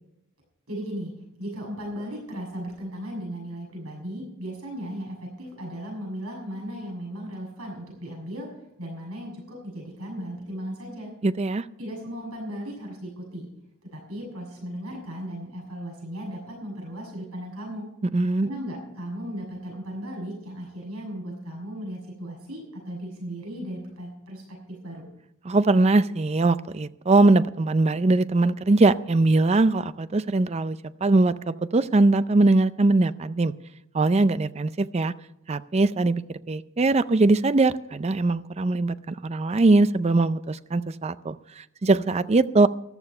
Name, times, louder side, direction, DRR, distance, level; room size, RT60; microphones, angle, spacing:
voice 1, 0.7-1.1 1.4-8.5 8.8-11.1 11.8-13.5 13.9-17.9 18.4-25.1, equal, 80° right, -1 dB, 6.7 m, -36 dB
voice 2, 11.2-11.6 18.1-18.5 25.5-33.5 33.9-35.1 35.5-42.7, right 2 dB, 30° right, 15 dB, 0.4 m, -21 dB
14.0 x 12.0 x 5.5 m, 0.83 s
head